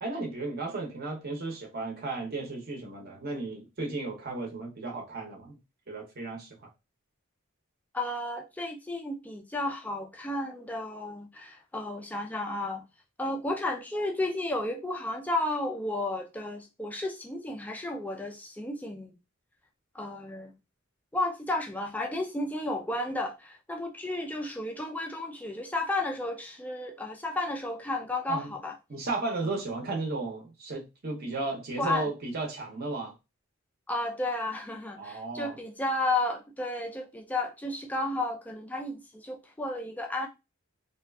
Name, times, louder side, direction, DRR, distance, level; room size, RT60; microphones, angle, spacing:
voice 1, 0.0-5.6 5.9-6.5 28.3-28.5 28.9-33.1 35.0-35.6, right 3 dB, 45° right, 0.6 m, -34 dB
voice 2, 7.9-12.8 13.2-19.1 19.9-20.5 21.1-28.7 31.8-32.1 33.9-40.3, left 2 dB, 5° left, 0.3 m, -33 dB
2.5 x 2.3 x 2.2 m
head